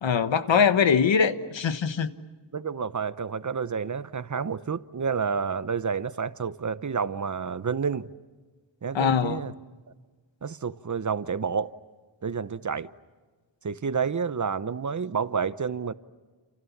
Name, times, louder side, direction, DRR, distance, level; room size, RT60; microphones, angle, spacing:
voice 1, 0.0-2.1 8.9-9.5, left 6 dB, 85° left, 1.4 m, -22 dB
voice 2, 2.5-8.1 8.8-9.5 10.4-11.7 12.2-12.9 13.6-15.9, right 6 dB, 40° right, 0.8 m, -29 dB
29.0 x 28.5 x 7.2 m
wide cardioid pair, 140°, 44 cm